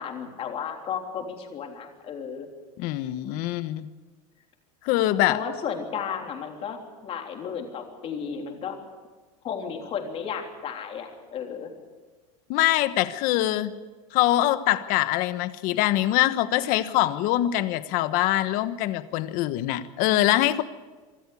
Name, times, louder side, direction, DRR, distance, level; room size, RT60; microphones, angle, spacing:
voice 1, 0.0-2.5 5.3-8.8 9.4-11.7, left 7 dB, 35° left, 2 dB, 3.5 m, -33 dB
voice 2, 2.8-3.9 4.8-5.4 12.5-13.8 14.1-20.6, left 15 dB, 50° left, 12 dB, 1.2 m, -23 dB
24.5 x 13.5 x 8.5 m, 1.3 s
supercardioid pair, 145°, 18 cm